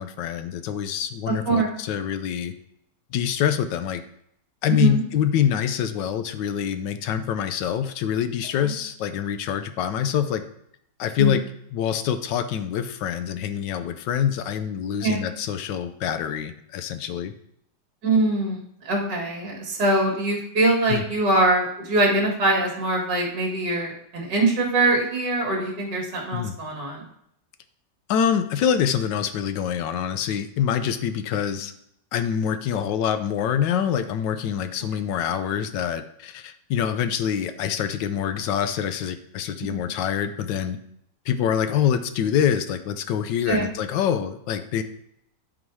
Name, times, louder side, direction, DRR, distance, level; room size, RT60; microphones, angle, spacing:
voice 1, 0.0-2.5 3.1-4.0 4.6-10.4 11.0-11.4 11.7-17.3 20.9-21.0 26.3-26.5 28.1-31.7 32.1-40.8 41.3-44.8, left 9 dB, 85° left, 10 dB, 1.4 m, -25 dB
voice 2, 1.3-1.7 4.7-5.0 8.6-8.7 11.2-11.3 15.0-15.2 18.0-18.6 18.8-27.0 39.7-39.8 43.5-43.7, right 2 dB, 75° right, -1 dB, 2.4 m, -23 dB
11.0 x 4.0 x 4.7 m, 0.72 s
omnidirectional pair, 1.9 m